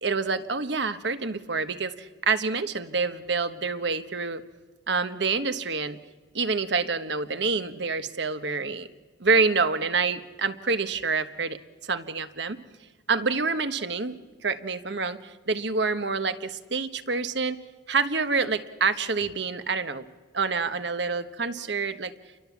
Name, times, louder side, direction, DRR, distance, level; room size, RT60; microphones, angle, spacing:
voice 1, 0.0-4.4 4.9-6.0 6.3-8.9 9.2-11.6 11.9-12.6 13.1-14.1 14.4-17.6 17.9-20.0 20.3-22.1, right 4 dB, 60° right, 10 dB, 1.2 m, -27 dB
29.0 x 23.0 x 7.3 m, 1.4 s
head